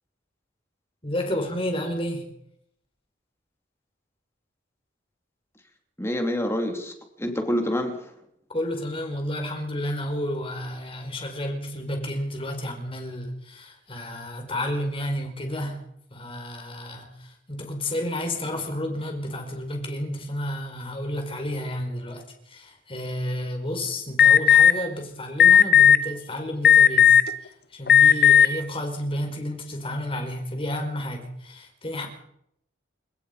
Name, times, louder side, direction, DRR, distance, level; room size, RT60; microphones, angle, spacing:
voice 1, 1.0-2.2 8.5-15.8 16.1-27.1 27.7-32.1, left 1 dB, 30° left, 4 dB, 4.8 m, -31 dB
voice 2, 6.0-8.1, equal, 15° left, 4 dB, 3.3 m, -27 dB
Alarm, 24.2-24.7 25.4-26.0 26.6-27.3 27.9-28.5, left 9 dB, 55° left, 1.1 m, -13 dB
28.5 x 17.5 x 5.3 m, 0.75 s
head